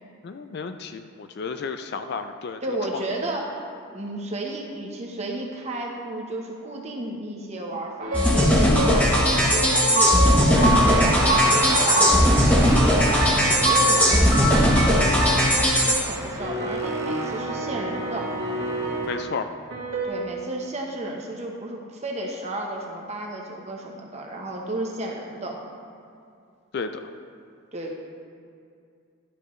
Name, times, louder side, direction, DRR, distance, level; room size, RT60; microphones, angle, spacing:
voice 1, 0.2-2.8 19.1-19.5 26.7-27.1, left 5 dB, 50° left, 8 dB, 0.3 m, -32 dB
voice 2, 2.6-3.6 3.9-11.4 11.7-18.3 20.0-25.6 27.7-27.9, right 1 dB, 30° right, 0 dB, 0.9 m, -33 dB
sound 1, 8.0-9.0 9.5-12.2 13.0-15.7 16.4-19.1 19.7-20.1, equal, 65° right, 1.7 m, -26 dB
sound 2, 8.1-16.0, equal, 5° left, 1.0 m, -19 dB
sound 3, 10.6-19.2, right 1 dB, 10° right, 0.5 m, -33 dB
12.0 x 6.5 x 3.2 m, 2.4 s
head